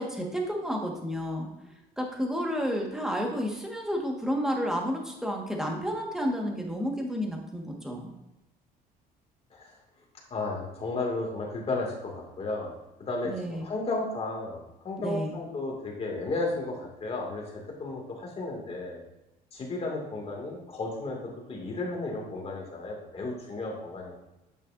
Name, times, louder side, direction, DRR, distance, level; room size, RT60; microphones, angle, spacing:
voice 1, 0.0-1.5 2.0-8.1 13.2-13.7 15.0-15.4, equal, 5° right, 0 dB, 1.6 m, -31 dB
voice 2, 10.3-12.7 13.0-19.0 19.5-24.1, left 2 dB, 35° left, -1 dB, 2.2 m, -33 dB
8.8 x 6.5 x 2.6 m, 0.96 s
cardioid pair, 110°, 17 cm